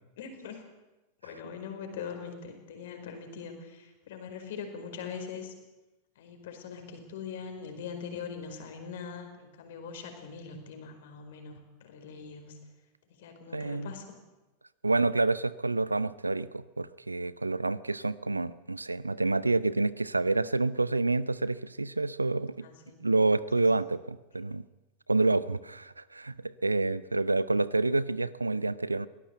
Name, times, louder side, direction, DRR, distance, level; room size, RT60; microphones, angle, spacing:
voice 1, 0.2-0.6 1.2-5.5 6.2-12.6 13.1-14.1 14.8-15.0 22.6-23.0 23.6-23.8, left 6 dB, 55° left, 6 dB, 4.7 m, -42 dB
voice 2, 13.5-13.9 14.8-22.6 23.0-24.6 25.1-29.1, right 3 dB, 80° right, 18 dB, 0.6 m, -28 dB
22.5 x 17.5 x 7.9 m, 1.1 s
figure-of-eight pair, 90°, 0 cm